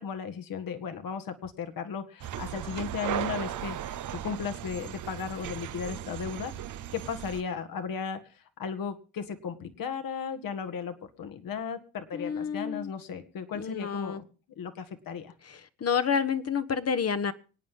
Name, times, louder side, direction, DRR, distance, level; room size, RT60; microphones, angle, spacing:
voice 1, 0.0-6.5 6.9-14.2 14.6-15.3, left 6 dB, 65° left, 1.9 m, -36 dB
sound 1, 2.2-7.4, right 11 dB, 55° right, 0.9 m, -36 dB
voice 2, 12.1-12.9 13.5-14.2 15.5-17.3, left 6 dB, 40° left, 1.3 m, -29 dB
26.0 x 9.1 x 3.7 m
supercardioid pair, 60°, 37 cm